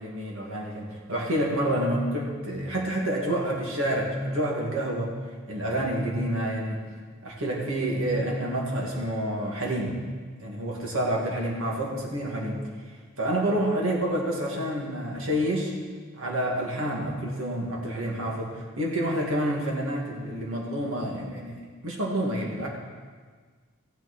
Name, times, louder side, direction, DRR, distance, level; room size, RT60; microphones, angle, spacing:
voice 1, 0.0-5.1 5.5-6.8 7.2-10.0 10.4-12.6 13.2-15.7 16.1-22.7, right 1 dB, 65° right, -2 dB, 2.2 m, -28 dB
15.0 x 9.4 x 4.3 m, 1.5 s
head